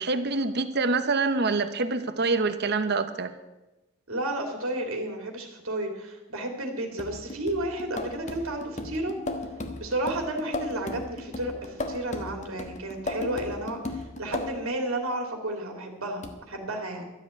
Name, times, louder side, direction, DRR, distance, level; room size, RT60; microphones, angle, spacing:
voice 1, 0.0-3.3, right 3 dB, 50° right, 10 dB, 1.0 m, -26 dB
voice 2, 4.1-9.1 9.8-17.1, right 1 dB, 75° right, 3 dB, 2.4 m, -32 dB
sound 1, 7.0-14.8 16.2-16.3, left 2 dB, 35° left, 1.2 m, -36 dB
13.0 x 7.3 x 9.3 m, 1.0 s
head